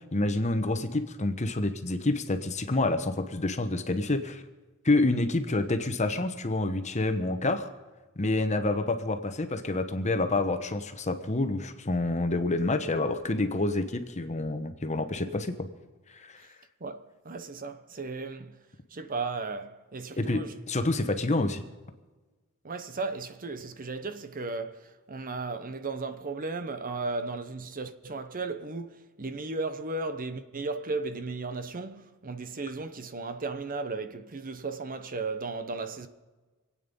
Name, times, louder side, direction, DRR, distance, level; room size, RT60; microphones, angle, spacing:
voice 1, 0.1-4.4 4.8-7.7 8.2-15.5 16.1-16.4 20.2-21.6, left 2 dB, 30° left, 1.1 m, -28 dB
voice 2, 16.8-18.6 18.9-20.5 22.6-36.1, right 3 dB, 40° right, 0.9 m, -35 dB
26.0 x 9.0 x 5.4 m
head